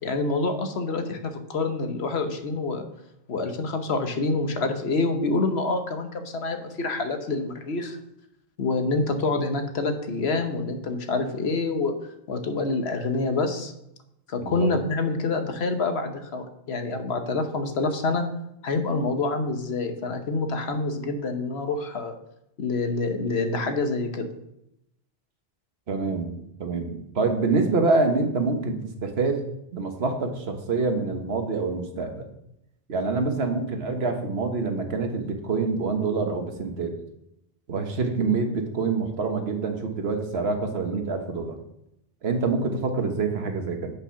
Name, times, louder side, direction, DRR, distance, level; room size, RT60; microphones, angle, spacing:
voice 1, 0.0-2.9 3.3-8.0 8.6-11.9 12.3-13.7 14.3-18.2 18.6-22.2 22.6-24.3, left 3 dB, 85° left, 6 dB, 1.3 m, -27 dB
voice 2, 25.9-29.4 29.7-32.2 32.9-36.9 37.7-41.6 42.2-43.9, right 4 dB, 80° right, 4 dB, 1.4 m, -26 dB
8.6 x 5.3 x 5.7 m, 0.81 s
omnidirectional pair, 1.1 m